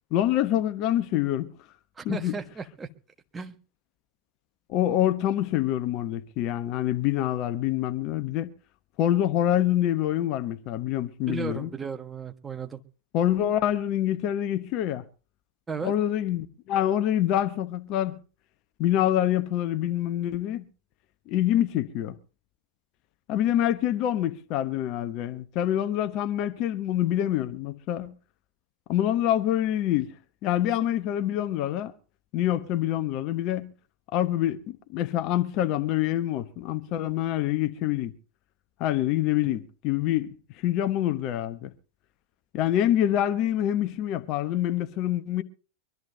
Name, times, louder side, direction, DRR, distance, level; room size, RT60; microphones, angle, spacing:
voice 1, 0.1-1.5 2.0-2.3 4.7-8.5 9.0-11.7 13.1-15.1 15.8-18.2 18.8-20.7 21.3-22.2 23.3-28.1 28.9-30.2 30.4-31.9 32.3-33.7 34.1-38.1 38.8-41.7 42.5-45.4, left 12 dB, 40° left, 1.1 m, -26 dB
voice 2, 2.0-2.9 3.3-3.6 11.3-12.8 15.7-15.9, right 5 dB, 15° right, 1.4 m, -35 dB
24.0 x 13.0 x 2.8 m
figure-of-eight pair, 90°, 0 cm